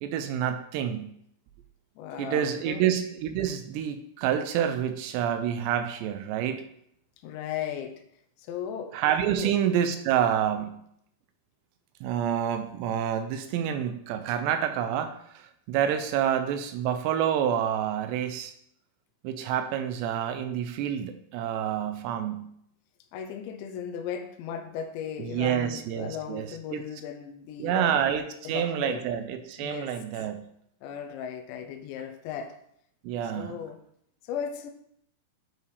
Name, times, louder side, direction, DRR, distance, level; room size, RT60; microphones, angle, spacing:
voice 1, 0.0-1.1 2.2-6.6 8.9-10.8 12.0-18.5 19.2-22.5 25.2-26.8 27.6-30.4 33.0-33.6, right 9 dB, 80° right, 9 dB, 2.6 m, -28 dB
voice 2, 2.0-2.9 7.2-8.0 8.4-9.0 9.3-9.5 23.1-28.0 28.4-29.0 29.6-29.9 30.8-32.6 33.4-33.8 34.2-34.7, left 8 dB, 85° left, 7 dB, 3.0 m, -36 dB
11.0 x 4.8 x 3.3 m, 0.71 s
omnidirectional pair, 5.2 m